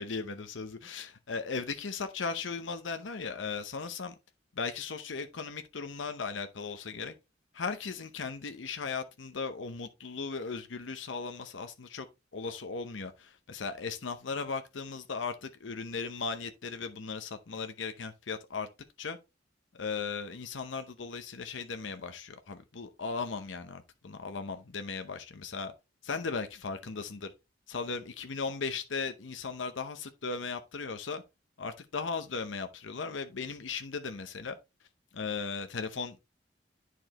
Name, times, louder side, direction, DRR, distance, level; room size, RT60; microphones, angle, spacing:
voice 1, 0.0-4.1 4.6-7.1 7.5-12.1 12.3-18.7 19.0-19.2 19.7-25.7 26.0-27.3 27.7-31.2 31.6-34.6 35.1-36.2, left 4 dB, 85° left, 0.8 m, -37 dB
10.0 x 4.7 x 3.0 m
head